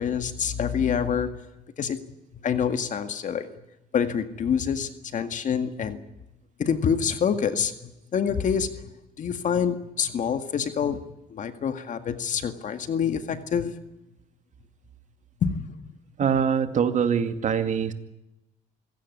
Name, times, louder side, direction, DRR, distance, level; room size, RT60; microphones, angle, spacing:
voice 1, 0.0-1.4 1.8-2.0 2.4-3.5 3.9-6.0 6.6-8.9 9.2-11.0 11.3-13.7 15.4-15.7, left 7 dB, 50° left, 9 dB, 1.9 m, -26 dB
voice 2, 16.2-17.9, right 7 dB, 45° right, 9 dB, 2.2 m, -23 dB
25.5 x 16.5 x 9.7 m, 0.93 s
cardioid pair, 110°, 17 cm